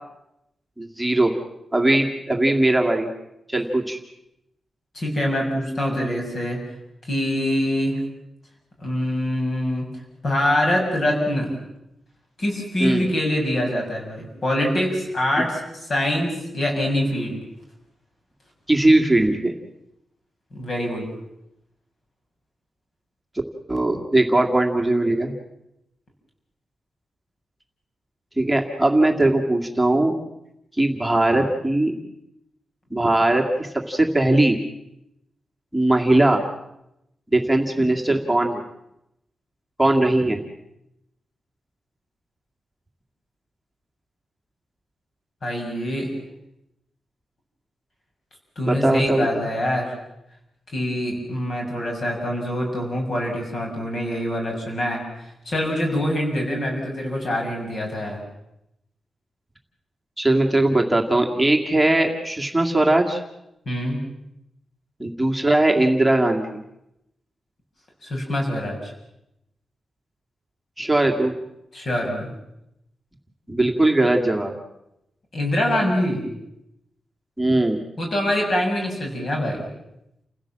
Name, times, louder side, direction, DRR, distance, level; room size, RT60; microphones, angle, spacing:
voice 1, 0.8-1.3 1.7-3.1 3.5-4.0 12.8-13.0 18.7-19.5 23.7-25.3 28.4-30.1 30.8-32.0 32.9-34.6 35.7-36.5 37.3-38.6 39.8-40.4 48.7-49.4 60.2-63.2 65.0-66.6 70.8-71.3 73.5-74.5 77.4-77.8, right 1 dB, 5° right, 1 dB, 2.2 m, -19 dB
voice 2, 4.9-6.6 7.1-8.0 8.8-9.9 10.2-11.5 12.4-15.6 15.9-17.4 20.5-21.1 45.4-46.1 48.6-49.9 50.7-55.0 55.4-58.2 63.6-64.0 68.0-68.9 71.7-72.3 75.3-76.2 78.0-79.6, left 1 dB, 40° left, 1 dB, 6.8 m, -24 dB
29.5 x 16.0 x 7.5 m, 0.85 s
wide cardioid pair, 175°, 0 cm